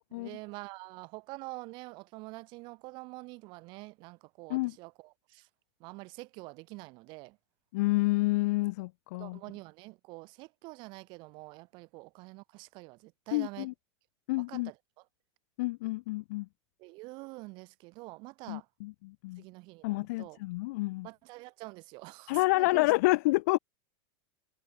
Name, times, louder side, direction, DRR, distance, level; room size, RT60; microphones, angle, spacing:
voice 1, 0.1-5.5 5.8-7.4 9.2-13.7 14.4-15.0 16.8-18.7 19.4-20.4 21.0-22.9, right 25 dB, 30° right, 2.3 m, -46 dB
voice 2, 7.7-9.4 13.3-13.7 14.3-14.7 15.6-16.5 18.5-19.4 19.8-21.1 22.3-23.6, left 22 dB, 35° left, 0.3 m, -29 dB
supercardioid pair, 180°, 16 cm